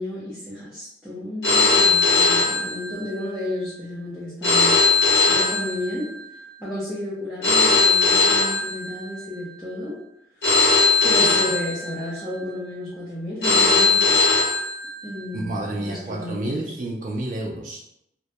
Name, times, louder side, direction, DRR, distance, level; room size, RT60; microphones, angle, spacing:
voice 1, 0.0-6.1 6.6-9.9 11.0-14.2 15.0-16.7, left 1 dB, ahead, -11 dB, 0.6 m, -32 dB
Telephone, 1.4-3.3 4.4-6.3 7.4-9.3 10.4-12.3 13.4-15.3, left 4 dB, 60° left, 0.7 m, -19 dB
voice 2, 15.3-17.9, right 1 dB, 45° right, -2 dB, 0.3 m, -30 dB
2.1 x 2.1 x 2.7 m, 0.78 s
head